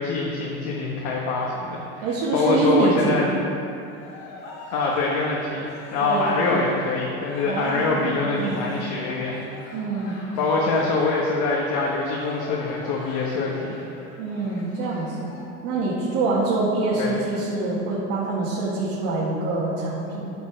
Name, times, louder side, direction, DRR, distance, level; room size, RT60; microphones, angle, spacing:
voice 1, 0.0-2.0 2.3-3.3 4.7-9.4 10.4-13.8 17.0-17.1, left 3 dB, 70° left, -3 dB, 1.4 m, -24 dB
voice 2, 2.0-3.3 6.0-6.6 7.4-8.6 9.7-10.2 14.2-15.3 15.6-20.4, right 3 dB, 80° right, -7 dB, 2.0 m, -25 dB
Cheering, 3.6-15.4, left 2 dB, 90° left, 2.4 m, -41 dB
11.0 x 5.4 x 6.3 m, 2.6 s
cardioid pair, 145°, 29 cm